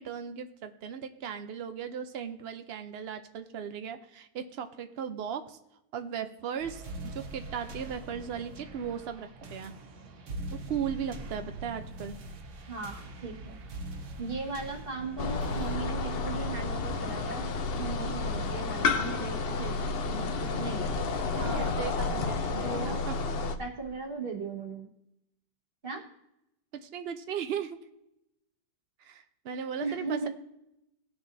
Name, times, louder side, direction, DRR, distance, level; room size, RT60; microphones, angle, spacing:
voice 1, 0.0-5.6 5.9-9.7 10.7-12.2 21.3-23.2 26.7-27.8 29.0-30.3, right 8 dB, 90° right, 8 dB, 0.5 m, -37 dB
sound 1, 6.6-15.7, right 2 dB, 50° right, 1.1 m, -42 dB
voice 2, 12.7-13.6 14.2-21.0 21.4-21.7 22.6-23.0 23.6-24.9 25.8-26.1 29.8-30.3, right 4 dB, 30° right, 2 dB, 1.5 m, -37 dB
sound 2, 15.2-23.6, left 4 dB, 65° left, 0.5 m, -31 dB
18.5 x 6.7 x 2.7 m, 0.85 s
omnidirectional pair, 1.9 m